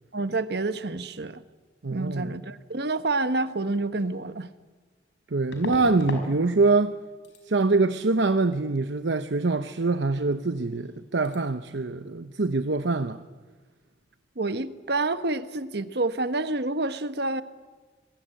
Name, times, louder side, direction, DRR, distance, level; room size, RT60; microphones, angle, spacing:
voice 1, 0.1-1.4 1.9-4.5 14.4-17.4, right 2 dB, 65° right, 1.2 m, -28 dB
voice 2, 1.8-2.3 5.3-6.9 7.5-13.2, right 3 dB, 80° right, 0.9 m, -24 dB
sound 1, 4.0-4.1 5.5-6.3 6.6-7.0 7.2-7.4 10.4-10.5 10.7-11.0 11.2-11.4, left 1 dB, 85° left, 5.3 m, -36 dB
26.0 x 22.0 x 9.0 m
head